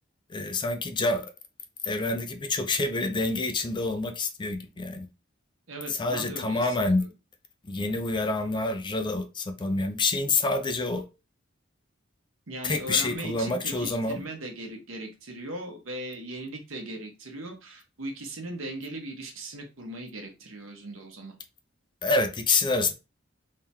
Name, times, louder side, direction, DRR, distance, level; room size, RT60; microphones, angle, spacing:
voice 1, 0.3-1.3 1.8-5.1 5.9-7.1 7.6-11.0 12.6-14.2 22.0-22.9, left 3 dB, 25° left, 0.5 m, -27 dB
voice 2, 5.7-7.1 12.5-21.3, right 1 dB, 85° right, 1.1 m, -38 dB
3.6 x 3.4 x 2.9 m
head